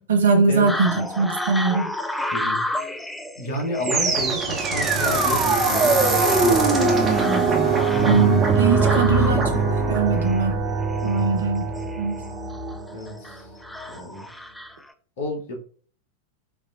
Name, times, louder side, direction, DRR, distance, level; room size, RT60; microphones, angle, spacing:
voice 1, 0.0-1.9 8.1-10.6 11.0-11.6 12.0-12.2, right 4 dB, 65° right, 5 dB, 0.8 m, -21 dB
sound 1, 0.7-14.9, left 1 dB, 5° left, 0.4 m, -33 dB
voice 2, 3.4-7.3 7.6-8.4 8.8-9.6 11.0-11.3 12.9-13.5 13.9-14.3 15.2-15.6, left 1 dB, 55° left, 2 dB, 1.1 m, -31 dB
sound 2, 3.8-13.0, right 4 dB, 20° right, 0.9 m, -21 dB
4.7 x 3.1 x 2.5 m, 0.43 s
figure-of-eight pair, 90°, 0 cm